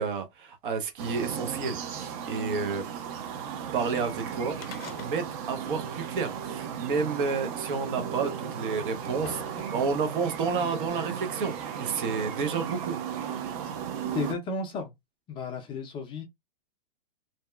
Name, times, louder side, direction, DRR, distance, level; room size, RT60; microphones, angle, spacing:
voice 1, 0.0-2.8 3.7-4.6 5.0-13.0, right 5 dB, 60° right, 0.8 m, -30 dB
sound 1, 1.0-14.3, right 8 dB, 40° right, 0.5 m, -35 dB
sound 2, 4.5-5.6 5.8-5.9 6.9-7.0 7.9-8.0 8.7-10.0 10.9-11.0, left 7 dB, 80° left, 0.7 m, -45 dB
voice 2, 14.1-14.9 15.3-16.2, left 4 dB, 15° left, 0.4 m, -33 dB
2.7 x 2.2 x 2.3 m
hypercardioid pair, 125°, 29 cm